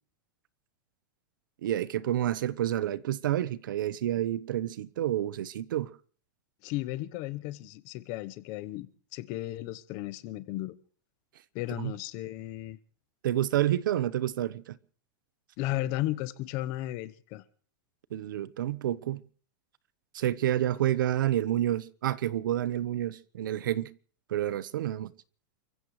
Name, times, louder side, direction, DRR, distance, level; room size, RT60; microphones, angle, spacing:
voice 1, 1.6-5.9 11.8-11.9 13.2-14.8 18.1-19.2 20.1-23.9 24.3-25.1, right 12 dB, 80° right, 1.0 m, -29 dB
voice 2, 6.6-10.8 11.5-12.8 15.6-17.4, left 15 dB, 35° left, 0.9 m, -35 dB
29.5 x 15.5 x 3.2 m
supercardioid pair, 175°, 11 cm